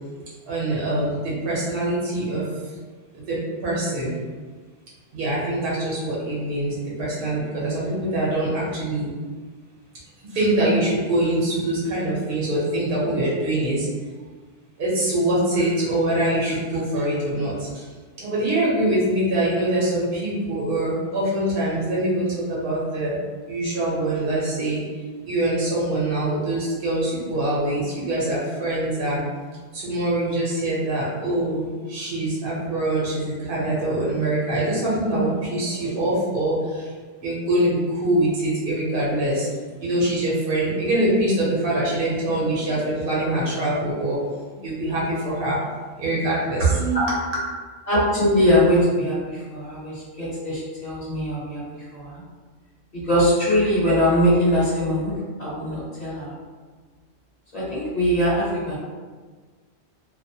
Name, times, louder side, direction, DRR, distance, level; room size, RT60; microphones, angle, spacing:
voice 1, 0.5-2.4 3.3-4.1 5.1-9.1 10.3-13.9 14.8-17.7 18.2-23.2 23.5-24.8 25.2-29.2 29.7-36.6 37.2-39.5 39.8-44.2 44.6-45.6 46.0-47.2, right 1 dB, 55° right, -6 dB, 0.9 m, -24 dB
voice 2, 47.9-51.6 51.9-52.2 52.9-55.1 55.4-56.4 57.5-58.8, equal, 35° left, -9 dB, 1.0 m, -21 dB
2.6 x 2.1 x 2.7 m, 1.5 s
omnidirectional pair, 1.2 m